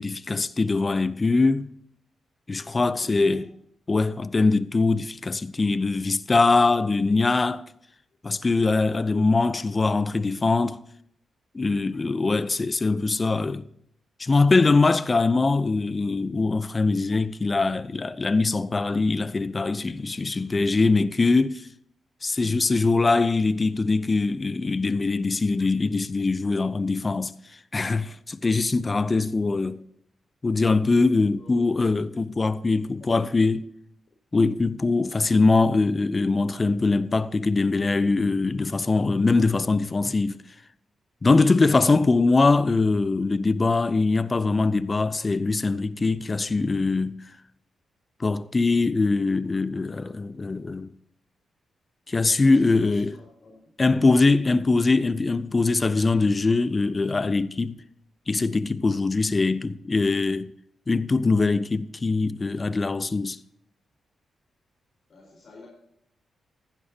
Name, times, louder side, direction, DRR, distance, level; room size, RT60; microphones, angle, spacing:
voice 1, 0.0-1.7 2.5-3.4 3.9-7.6 8.2-10.8 11.5-13.7 14.2-21.7 22.2-27.3 27.7-29.8 30.4-33.6 34.3-40.4 41.2-47.2 48.2-50.9 52.1-53.1 53.8-57.7 58.3-60.5 60.9-63.4, left 3 dB, 30° left, 0.6 m, -22 dB
voice 2, 3.0-3.5 9.0-9.3 29.6-29.7 31.3-31.9 32.6-33.4 35.0-35.3 52.4-54.2 65.1-65.7, left 2 dB, 55° left, 4.4 m, -46 dB
15.0 x 11.5 x 2.9 m
cardioid pair, 70°, 0 cm